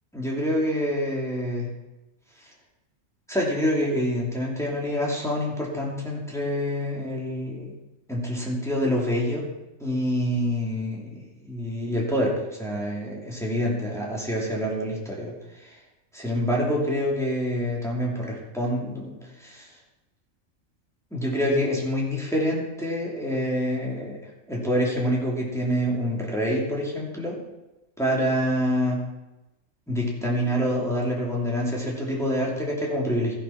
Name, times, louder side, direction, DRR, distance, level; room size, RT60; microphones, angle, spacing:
voice 1, 0.1-1.7 3.3-7.7 8.1-9.4 9.8-15.8 16.1-19.7 21.1-24.2 24.5-27.4 28.0-29.0 29.9-33.3, equal, ahead, -4 dB, 2.7 m, -26 dB
13.5 x 7.5 x 5.8 m, 1.0 s
omnidirectional pair, 1.4 m